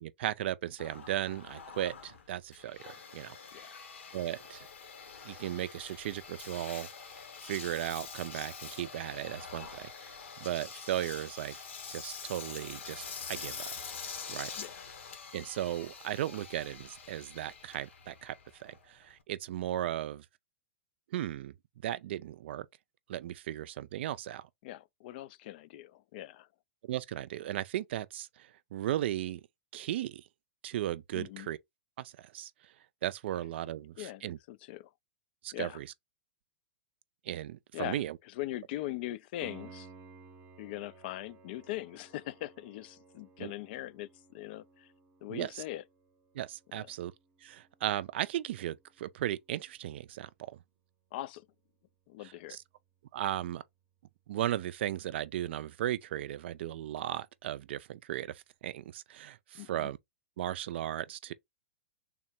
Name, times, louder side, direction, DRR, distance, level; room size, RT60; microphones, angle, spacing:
voice 1, 0.0-3.4 3.6-3.7 4.1-4.7 5.2-6.9 7.5-9.9 10.4-11.6 11.9-13.7 14.3-14.5 15.3-18.3 18.6-20.3 21.1-21.5 21.8-22.7 23.1-24.5 26.8-29.4 29.7-30.2 30.6-31.6 32.0-32.5 33.0-34.4 35.4-35.9 37.3-38.2 43.4-43.5 45.3-45.6 46.3-47.1 47.4-50.6 52.2-52.6 53.1-53.6 54.3-60.0 60.4-61.3, right 12 dB, 60° right, 0.4 m, -36 dB
Engine, 0.8-19.2, left 6 dB, 75° left, 0.9 m, -46 dB
voice 2, 24.6-26.5 31.1-31.5 34.0-34.9 35.5-35.8 37.7-38.0 38.4-39.9 40.6-44.9 45.2-45.8 51.1-51.4 52.1-52.6 59.5-59.9, left 15 dB, 55° left, 0.3 m, -41 dB
Piano, 39.4-50.1 53.4-53.5, right 4 dB, 35° right, 0.7 m, -57 dB
3.6 x 2.1 x 4.2 m
hypercardioid pair, 105°, 7 cm